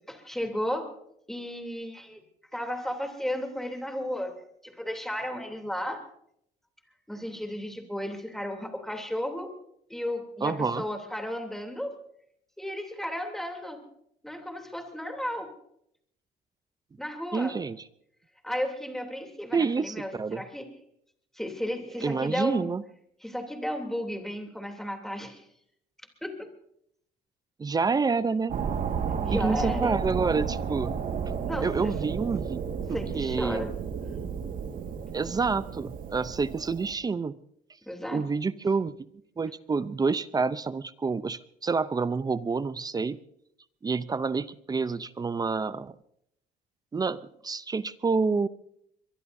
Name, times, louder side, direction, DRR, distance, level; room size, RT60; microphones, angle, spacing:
voice 1, 0.1-0.9 1.3-2.2 2.5-4.3 4.6-6.0 7.1-9.5 9.9-12.0 12.6-13.8 14.2-15.5 17.0-17.6 18.4-20.7 21.3-22.7 23.2-25.4 26.2-26.5 29.2-30.0 31.4-31.9 32.9-33.7 37.9-38.2, equal, ahead, 3 dB, 3.1 m, -34 dB
voice 2, 10.4-10.8 17.3-17.8 19.5-20.4 22.0-22.8 27.6-28.6 29.3-31.0 31.6-32.6 32.9-33.6 35.1-37.4 38.1-38.9 39.4-43.2 43.8-46.0 46.9-47.2 47.4-48.5, right 4 dB, 25° right, 15 dB, 0.6 m, -28 dB
sound 1, 28.5-36.9, right 6 dB, 55° right, 1.9 m, -32 dB
23.0 x 22.0 x 2.7 m, 0.73 s
cardioid pair, 110°, 17 cm